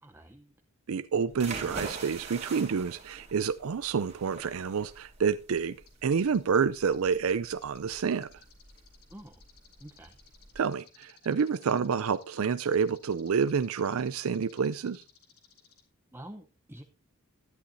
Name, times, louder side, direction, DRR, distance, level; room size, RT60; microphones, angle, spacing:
voice 1, 0.0-0.5 9.1-9.4 9.8-10.2 16.1-16.8, right 1 dB, 10° right, 0.7 m, -48 dB
voice 2, 0.9-5.8 6.0-8.3 10.6-15.0, right 6 dB, 70° right, 0.4 m, -28 dB
sound 1, 1.3-10.6, right 3 dB, 30° right, 2.8 m, -44 dB
sound 2, 5.6-5.7 5.8-15.8, left 9 dB, 85° left, 3.4 m, -58 dB
13.0 x 11.5 x 2.7 m
head